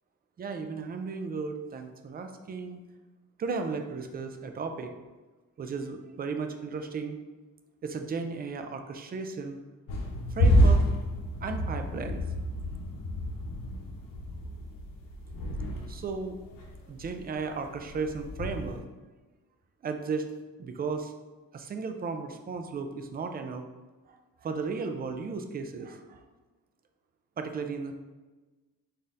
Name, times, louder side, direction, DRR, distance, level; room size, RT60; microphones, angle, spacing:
voice 1, 0.4-2.8 3.4-4.9 5.6-7.2 7.8-9.6 10.3-10.9 11.4-12.2 15.9-16.4 16.9-18.8 19.8-20.3 20.6-21.1 21.5-23.6 24.1-26.2 27.4-28.0, right 4 dB, 30° right, 6 dB, 0.3 m, -35 dB
sound 1, 9.9-18.8, equal, 75° left, 0.8 m, -28 dB
3.9 x 2.7 x 3.6 m, 1.2 s
cardioid pair, 125°, 34 cm